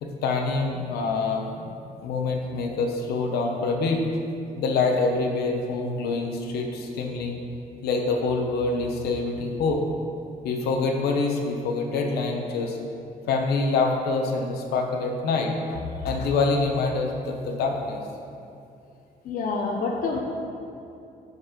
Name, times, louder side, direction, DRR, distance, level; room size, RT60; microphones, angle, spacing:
voice 1, 0.0-4.0 4.6-7.4 7.8-9.8 10.4-12.8 13.3-18.0, left 3 dB, 85° left, 2 dB, 0.9 m, -26 dB
voice 2, 19.3-20.2, left 4 dB, 60° left, 1 dB, 0.7 m, -27 dB
9.0 x 4.2 x 5.1 m, 2.6 s
cardioid pair, 160°, 16 cm